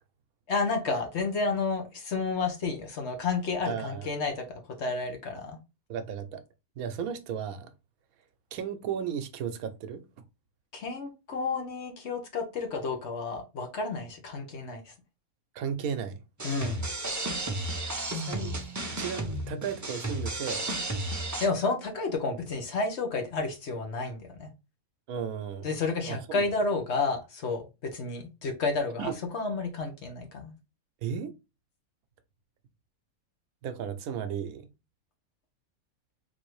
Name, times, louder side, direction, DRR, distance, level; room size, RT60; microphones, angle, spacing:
voice 1, 0.5-5.6 10.7-14.9 16.4-16.9 21.4-24.5 25.6-30.5, left 3 dB, 55° left, 1.0 m, -31 dB
voice 2, 3.6-4.1 5.9-6.4 6.8-7.7 8.5-10.0 15.5-16.2 18.1-18.6 18.9-20.7 25.1-25.8 26.1-26.4 29.0-29.2 31.0-31.3 33.6-34.7, right 7 dB, 75° right, 1.1 m, -34 dB
sound 1, 16.4-21.5, right 2 dB, 30° right, 0.3 m, -33 dB
4.0 x 2.7 x 3.0 m
omnidirectional pair, 1.5 m